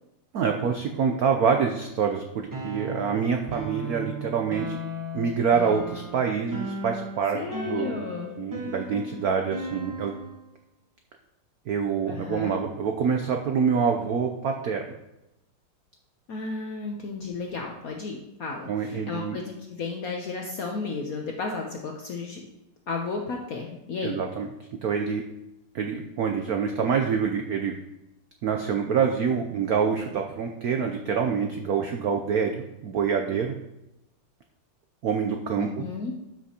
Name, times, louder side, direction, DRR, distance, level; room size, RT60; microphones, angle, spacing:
voice 1, 0.3-4.8 5.1-7.4 7.7-8.0 8.4-10.1 11.7-14.8 18.7-19.4 24.0-24.5 24.8-25.2 25.7-27.7 28.4-33.5 35.0-35.7, right 6 dB, 80° right, 4 dB, 0.8 m, -26 dB
sound 1, 2.5-10.4, equal, 25° right, 0.4 m, -36 dB
voice 2, 7.3-8.4 12.0-12.6 16.3-22.4 22.9-24.2 35.5-36.1, left 4 dB, 65° left, 1 dB, 0.9 m, -33 dB
12.5 x 6.0 x 2.9 m, 0.90 s
omnidirectional pair, 2.4 m